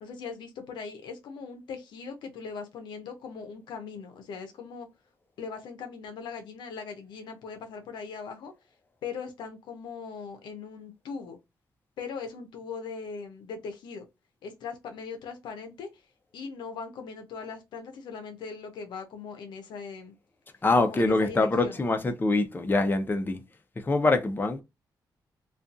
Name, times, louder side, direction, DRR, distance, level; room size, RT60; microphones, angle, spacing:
voice 1, 0.0-4.9 5.4-8.5 9.0-11.4 12.0-14.0 14.4-16.0 16.3-20.1 20.8-21.8, left 5 dB, 85° left, 0.6 m, -40 dB
voice 2, 20.6-23.4 23.8-24.6, left 2 dB, 25° left, 0.5 m, -24 dB
2.5 x 2.3 x 2.4 m
cardioid pair, 70°, 8 cm